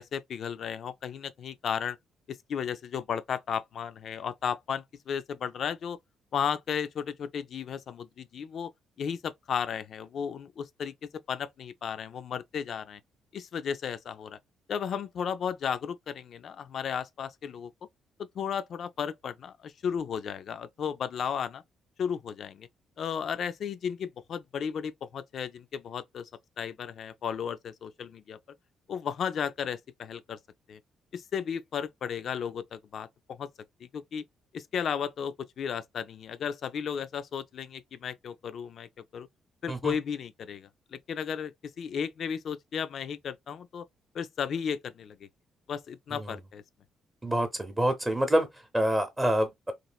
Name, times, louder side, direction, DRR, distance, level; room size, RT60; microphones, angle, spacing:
voice 1, 0.0-2.0 2.3-6.0 6.3-8.7 9.0-10.9 11.3-13.0 13.3-14.4 14.7-17.7 18.4-21.6 22.0-22.7 23.0-26.3 26.6-28.4 28.9-30.4 30.7-30.8 31.1-33.5 33.9-34.2 34.5-39.3 39.6-41.5 41.8-43.8 44.1-45.3 45.7-46.6, left 7 dB, 60° left, 0.3 m, -34 dB
voice 2, 47.2-48.5 48.7-49.7, equal, 15° right, 0.7 m, -26 dB
3.0 x 2.4 x 2.3 m
cardioid pair, 90°, 0 cm